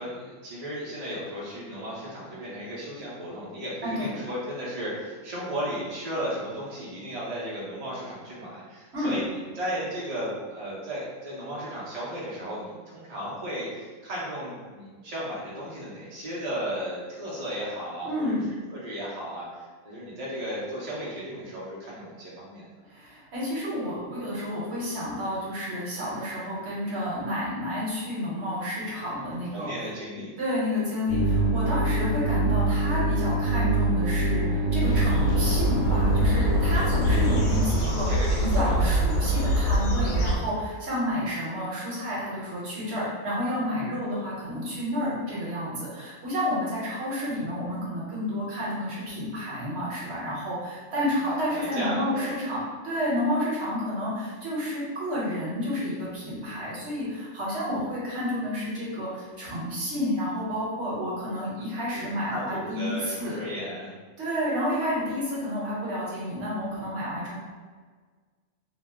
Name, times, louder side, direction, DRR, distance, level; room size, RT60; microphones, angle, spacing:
voice 1, 0.0-18.4 18.7-22.7 29.1-30.3 38.1-38.9 51.4-52.4 61.9-63.9, equal, 40° right, -7 dB, 0.6 m, -35 dB
voice 2, 18.0-18.4 22.9-29.7 30.4-38.1 38.4-63.4 64.2-67.4, left 1 dB, 55° right, -7 dB, 1.1 m, -30 dB
sound 1, 31.1-37.4, right 2 dB, 60° left, 1.0 m, -24 dB
sound 2, 34.9-40.3, equal, 80° left, 1.1 m, -25 dB
2.8 x 2.0 x 3.4 m, 1.5 s
omnidirectional pair, 1.4 m